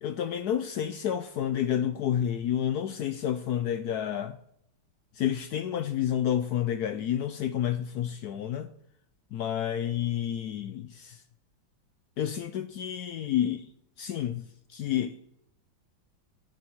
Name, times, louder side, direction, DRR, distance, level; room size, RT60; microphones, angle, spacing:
voice 1, 0.0-4.4 5.2-8.7 9.3-11.2 12.2-13.7 14.0-14.4 14.7-15.3, left 10 dB, 75° left, 0.9 m, -30 dB
20.0 x 12.0 x 3.1 m
omnidirectional pair, 2.2 m